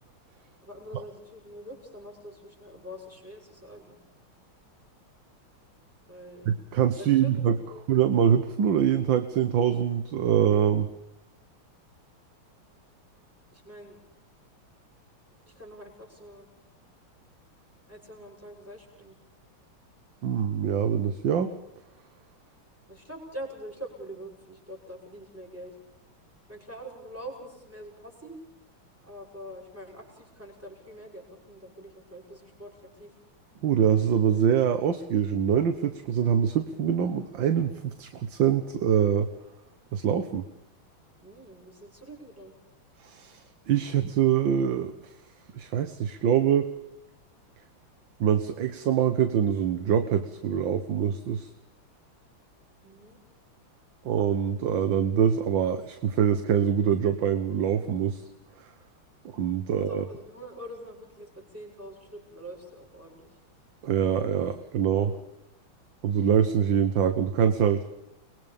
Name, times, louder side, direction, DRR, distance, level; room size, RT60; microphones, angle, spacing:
voice 1, 0.6-4.0 6.1-6.5 7.0-7.3 7.7-7.8 13.5-14.0 15.5-16.5 17.9-19.2 22.9-25.8 26.5-28.4 29.0-33.1 41.2-42.5 52.8-53.2 59.7-63.4, equal, 5° right, 1 dB, 6.6 m, -44 dB
voice 2, 6.5-7.6 7.9-10.9 20.2-21.5 33.6-39.3 39.9-40.4 43.0-43.4 43.7-44.9 45.5-46.7 48.2-51.5 54.1-58.2 59.3-60.0 63.8-65.2 66.0-67.8, right 8 dB, 65° right, 9 dB, 1.9 m, -24 dB
30.0 x 22.0 x 5.4 m, 0.85 s
omnidirectional pair, 2.3 m